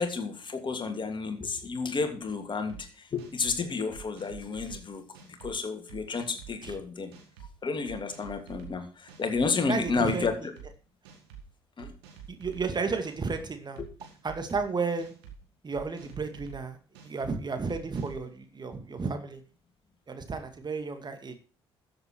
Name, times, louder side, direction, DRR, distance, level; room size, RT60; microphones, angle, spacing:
voice 1, 0.0-7.1 7.6-10.5 11.8-11.9 13.8-13.9, left 4 dB, 40° left, 6 dB, 2.8 m, -31 dB
sound 1, 2.7-2.8 3.2-3.6 3.9-4.8 5.1-5.5 5.9-6.7 7.1-7.5 7.9-8.7 9.1-9.4 9.8-10.7 11.1-11.4 11.8-12.6 13.0-13.4 13.8-14.6 15.0-15.4 15.7-16.6 17.0-17.3 17.7-18.2, right 9 dB, 80° right, 2.6 m, -47 dB
voice 2, 9.7-10.3 12.3-13.8 14.2-15.1 15.6-16.8 17.0-19.4 20.1-21.4, right 4 dB, 35° right, 7 dB, 2.2 m, -32 dB
13.5 x 7.9 x 4.6 m, 0.37 s
hypercardioid pair, 45°, 13 cm